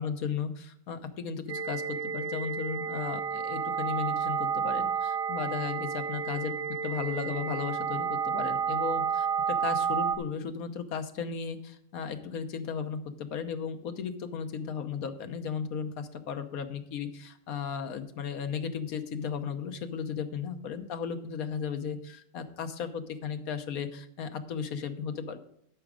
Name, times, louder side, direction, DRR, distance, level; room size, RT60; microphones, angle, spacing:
voice 1, 0.0-6.5 6.8-25.4, left 6 dB, 80° left, 9 dB, 1.4 m, -35 dB
sound 1, 1.5-10.2, right 7 dB, 50° right, 0.8 m, -31 dB
12.5 x 6.0 x 5.0 m, 0.69 s
omnidirectional pair, 1.5 m